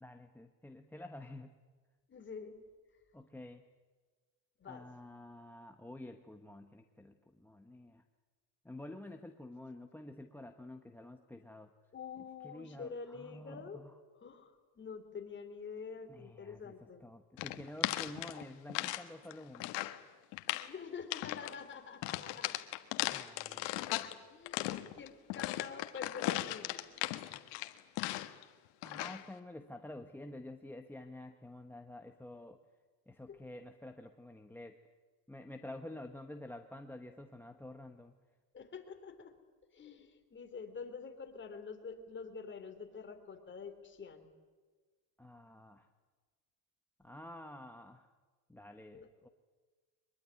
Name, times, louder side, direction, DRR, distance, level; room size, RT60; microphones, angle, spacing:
voice 1, 0.0-1.6 3.1-3.6 4.7-8.0 8.6-11.7 12.4-14.0 16.1-16.7 17.0-19.8 23.1-24.2 28.8-32.6 33.1-34.8 35.3-38.1 45.2-45.9 47.0-48.1 48.5-49.3, left 1 dB, 5° left, 5 dB, 1.0 m, -49 dB
voice 2, 2.1-2.6 4.6-4.9 11.9-13.8 14.1-17.0 20.5-22.6 24.3-26.8 33.3-33.4 38.5-39.3 39.7-44.3 48.9-49.1, left 5 dB, 25° left, 5 dB, 3.3 m, -47 dB
sound 1, 17.4-19.0 19.3-20.0 20.3-20.7 21.1-21.5 22.0-24.1 24.5-28.4 28.8-29.2, left 18 dB, 75° left, 1.6 m, -37 dB
23.5 x 21.5 x 10.0 m, 1.4 s
cardioid pair, 130°, 42 cm